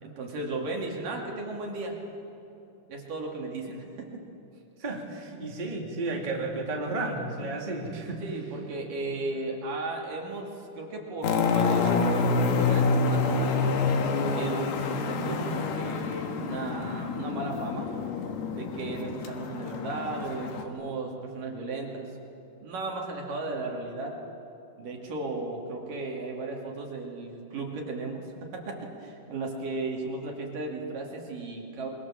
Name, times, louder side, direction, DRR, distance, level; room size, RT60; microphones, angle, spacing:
voice 1, 0.0-2.0 2.9-4.2 8.2-10.5 10.8-13.7 14.3-17.9 18.5-22.1 22.6-24.2 24.8-31.9, right 2 dB, 60° right, 0 dB, 3.9 m, -35 dB
voice 2, 4.8-8.2, right 2 dB, 15° right, -1 dB, 2.5 m, -32 dB
sound 1, 11.2-20.6, left 4 dB, 75° left, 3.5 m, -27 dB
26.0 x 23.5 x 7.3 m, 2.8 s
omnidirectional pair, 4.6 m